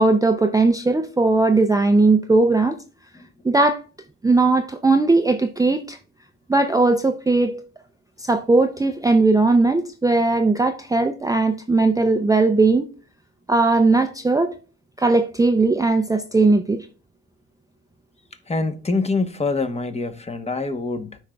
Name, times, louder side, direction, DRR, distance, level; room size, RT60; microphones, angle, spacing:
voice 1, 0.0-2.8 3.4-3.8 4.2-6.0 6.5-7.6 8.2-12.9 13.5-14.5 15.0-16.9, right 3 dB, 10° right, 0.4 m, -18 dB
voice 2, 18.5-21.2, left 3 dB, 20° left, 0.9 m, -25 dB
12.5 x 4.8 x 2.2 m
cardioid pair, 90°, 30 cm